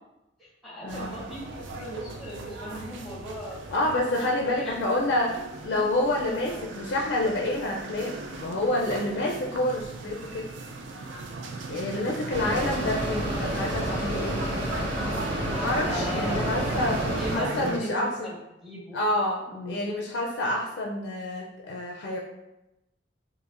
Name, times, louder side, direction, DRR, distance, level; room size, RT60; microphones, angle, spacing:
voice 1, 0.4-3.7 4.2-4.8 6.2-6.7 11.7-12.3 15.9-16.7 17.2-18.3 18.6-19.0 19.5-19.9, equal, ahead, -5 dB, 0.7 m, -38 dB
sound 1, 0.9-17.8, right 3 dB, 85° right, 0.4 m, -38 dB
voice 2, 3.7-5.4 5.6-8.1 8.4-10.5 11.7-14.4 15.6-17.1 17.3-18.3 18.9-22.2, left 1 dB, 75° left, -1 dB, 0.4 m, -28 dB
Mechanisms, 12.3-17.4, equal, 60° right, 1.4 m, -30 dB
4.8 x 2.1 x 2.4 m, 0.93 s
head